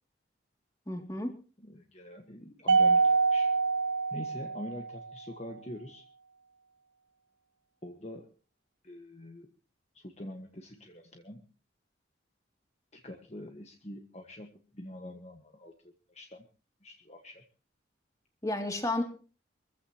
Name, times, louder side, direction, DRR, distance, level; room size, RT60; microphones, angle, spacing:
voice 1, 0.9-1.3 18.4-19.0, left 1 dB, 15° left, 5 dB, 2.6 m, -31 dB
voice 2, 1.6-3.5 4.1-6.0 7.8-8.3 8.8-9.5 9.9-11.4 12.9-15.7 16.1-16.4 16.8-17.4, left 1 dB, 35° left, 4 dB, 1.5 m, -45 dB
Mallet percussion, 2.7-5.1, right 4 dB, 70° right, 0.8 m, -25 dB
24.0 x 15.5 x 3.0 m, 0.36 s
head